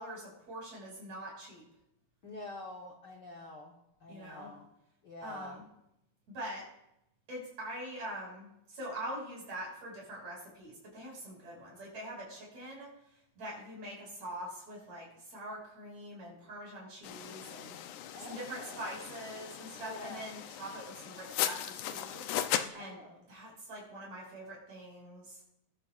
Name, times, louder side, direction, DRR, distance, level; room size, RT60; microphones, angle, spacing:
voice 1, 0.0-1.6 4.1-4.5 5.2-5.7 6.3-6.6 7.3-12.9 13.4-17.8 18.2-22.3 22.7-23.0 23.3-25.4, right 1 dB, 60° right, -3 dB, 7.0 m, -44 dB
voice 2, 2.2-4.7 5.0-5.6 18.1-19.1 19.8-20.2 22.8-23.3, left 2 dB, 55° left, 1 dB, 1.2 m, -47 dB
sound 1, 17.0-22.7, left 11 dB, 75° left, 2.1 m, -38 dB
21.0 x 12.0 x 2.5 m, 0.81 s
omnidirectional pair, 3.7 m